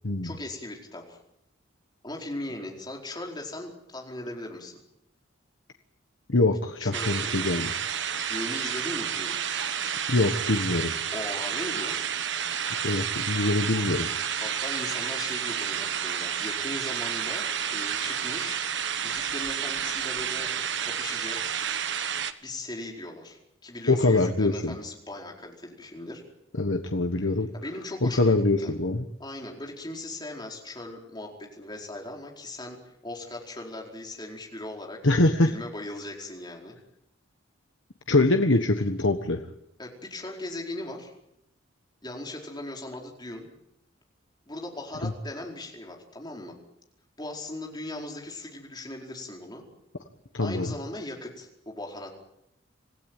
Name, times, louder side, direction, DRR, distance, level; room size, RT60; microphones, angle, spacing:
voice 1, 0.2-1.2 2.0-4.8 6.8-7.5 8.1-9.3 11.1-12.0 14.4-18.6 19.0-20.5 20.8-21.5 22.4-26.2 27.5-28.7 29.2-35.0 35.4-36.8 39.8-41.1 42.0-43.5 44.5-46.5 47.2-49.6 50.4-52.2, left 1 dB, 20° left, 0 dB, 4.7 m, -38 dB
voice 2, 6.3-7.7 10.1-10.9 12.8-14.1 23.9-24.7 26.6-27.5 28.0-29.0 35.0-35.5 38.1-39.4 50.3-50.7, left 2 dB, 70° left, 5 dB, 1.4 m, -23 dB
sound 1, 6.9-22.3, right 8 dB, 60° right, 1.3 m, -30 dB
26.5 x 16.0 x 9.2 m, 0.80 s
head